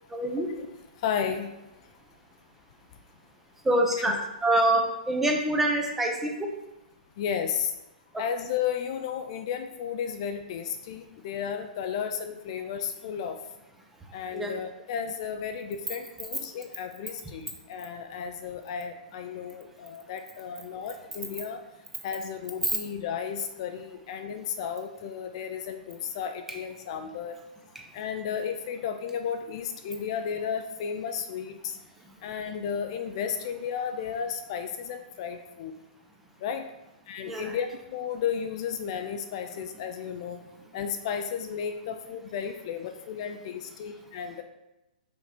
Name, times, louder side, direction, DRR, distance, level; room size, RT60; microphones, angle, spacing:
voice 1, 0.1-0.5 3.6-4.1 4.4-4.8 5.1-6.3 8.1-8.2 14.3-14.5 37.3-37.5, right 1 dB, 5° right, 1 dB, 0.7 m, -25 dB
voice 2, 1.0-1.6 4.1-4.2 7.2-7.8 8.2-13.4 14.1-21.6 22.0-27.4 27.9-31.8 32.2-35.7 36.4-36.7 37.1-40.4 40.7-44.4, left 7 dB, 40° left, 7 dB, 0.5 m, -33 dB
5.7 x 4.7 x 4.4 m, 0.94 s
hypercardioid pair, 160°, 5 cm